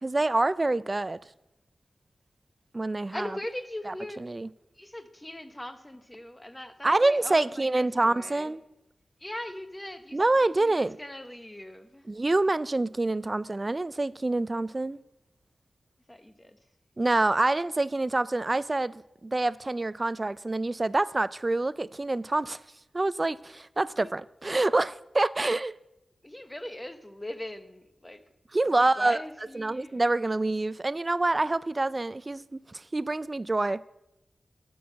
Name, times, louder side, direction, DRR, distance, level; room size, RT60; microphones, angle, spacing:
voice 1, 0.0-1.2 2.7-3.3 3.9-4.0 4.2-4.5 6.8-8.6 10.1-11.0 12.1-15.0 17.0-22.6 22.9-25.7 28.5-29.2 29.6-33.8, right 2 dB, 25° right, 0.3 m, -26 dB
voice 2, 3.1-4.3 4.8-8.6 9.2-12.1 16.1-16.6 24.0-24.1 26.2-28.2 28.8-30.0, left 1 dB, 10° left, 0.8 m, -40 dB
9.3 x 6.2 x 7.3 m
wide cardioid pair, 105°, 0 cm